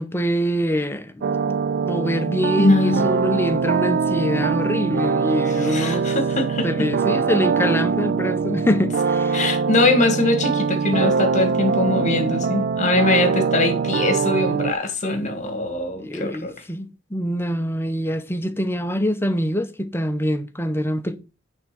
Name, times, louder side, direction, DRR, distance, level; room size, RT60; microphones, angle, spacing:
voice 1, 0.0-6.1 6.6-9.4 16.0-21.2, equal, 10° left, 0.7 m, -24 dB
sound 1, 1.2-14.7, right 5 dB, 50° right, 0.4 m, -22 dB
voice 2, 2.6-3.1 5.6-6.9 9.3-16.5, left 2 dB, 40° left, 1.5 m, -22 dB
9.4 x 3.7 x 5.9 m
head